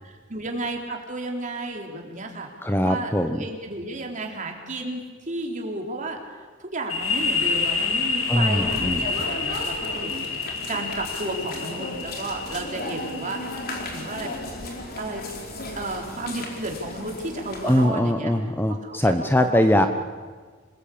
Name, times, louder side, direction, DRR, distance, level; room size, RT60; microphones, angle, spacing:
voice 1, 0.0-2.5 2.8-6.2 6.6-10.3 10.7-13.4 13.9-14.3 15.0-15.2 15.8-18.3 18.8-19.9, right 2 dB, 40° right, 2 dB, 4.0 m, -33 dB
voice 2, 2.6-3.4 8.3-9.3 17.6-19.9, left 1 dB, 10° left, 7 dB, 0.9 m, -22 dB
sound 1, 6.9-14.4, left 4 dB, 70° left, 3.2 m, -28 dB
sound 2, 8.6-17.9, left 1 dB, 50° left, 4.3 m, -35 dB
27.0 x 20.5 x 8.7 m, 1.5 s
head